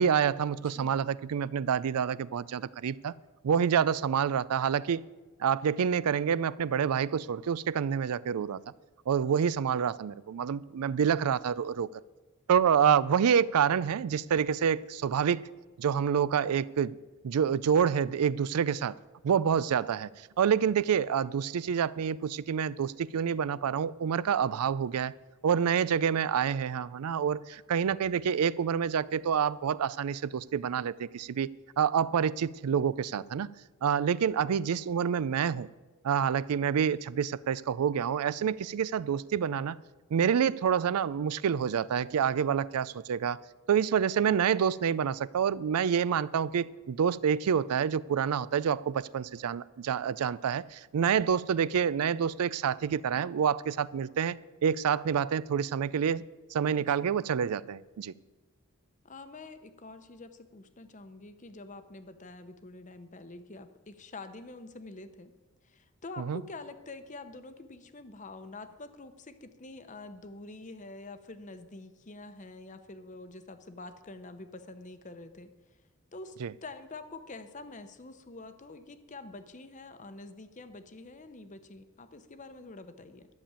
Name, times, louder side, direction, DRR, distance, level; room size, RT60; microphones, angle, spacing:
voice 1, 0.0-3.1 3.4-5.0 5.4-8.6 9.1-11.9 12.5-15.5 15.8-16.9 17.2-18.9 19.2-20.1 20.4-25.1 25.4-31.5 31.8-33.5 33.8-35.7 36.0-39.8 40.1-43.4 43.7-54.4 54.6-56.2 56.5-58.1 66.2-66.4 76.4-76.5, right 7 dB, 85° right, 0.4 m, -27 dB
voice 2, 0.6-1.0 56.9-57.1 59.0-65.3 65.6-75.5 76.1-76.4 76.6-83.3, left 2 dB, 35° left, 0.8 m, -46 dB
12.0 x 6.9 x 8.8 m
head